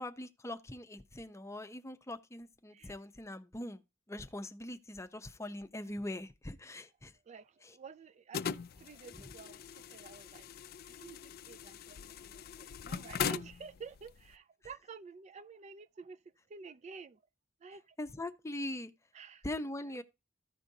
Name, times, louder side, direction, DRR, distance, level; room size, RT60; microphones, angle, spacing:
voice 1, 0.0-3.8 4.1-7.1 7.6-7.7 9.2-9.3 18.0-18.9 19.4-20.0, left 1 dB, 15° left, 0.7 m, -42 dB
voice 2, 7.2-16.2 16.5-17.2 17.6-18.0 19.1-19.5 19.8-20.0, right 5 dB, 35° right, 0.3 m, -51 dB
sound 1, 8.3-14.3, left 7 dB, 50° left, 0.4 m, -41 dB
14.5 x 5.1 x 2.7 m
head